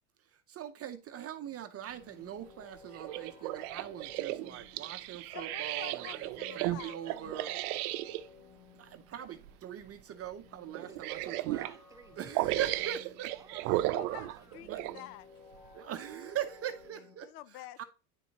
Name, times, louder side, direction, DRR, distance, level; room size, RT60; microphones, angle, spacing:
voice 1, 0.5-6.2 6.6-7.5 8.8-11.7 12.2-13.3 14.7-14.8 15.7-17.3 17.8-17.9, right 10 dB, 30° right, 0.7 m, -41 dB
sound 1, 1.4-17.2, left 5 dB, 50° left, 1.6 m, -58 dB
sound 2, 2.9-8.2 9.3-9.5 9.9-10.0 10.7-11.8 12.3-15.0 15.7-15.8, right 16 dB, 75° right, 0.6 m, -35 dB
voice 2, 5.3-7.6 13.9-15.3 17.2-17.8, left 14 dB, 80° left, 0.7 m, -48 dB
voice 3, 10.9-13.0 13.3-14.6, right 3 dB, 5° right, 1.3 m, -56 dB
10.5 x 4.1 x 2.9 m
supercardioid pair, 115°, 45 cm